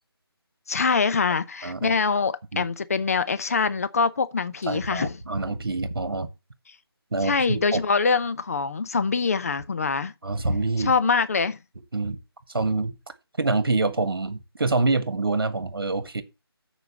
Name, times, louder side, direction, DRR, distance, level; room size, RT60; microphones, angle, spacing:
voice 1, 0.7-5.2 7.2-10.1 10.8-11.6, left 5 dB, 35° left, 0.7 m, -24 dB
voice 2, 1.6-2.0 2.5-2.7 4.7-6.3 7.1-7.8 10.2-10.9 11.9-12.2 12.5-12.9 13.4-16.2, right 3 dB, 60° right, 1.6 m, -26 dB
7.8 x 5.0 x 7.1 m
figure-of-eight pair, 155°, 13 cm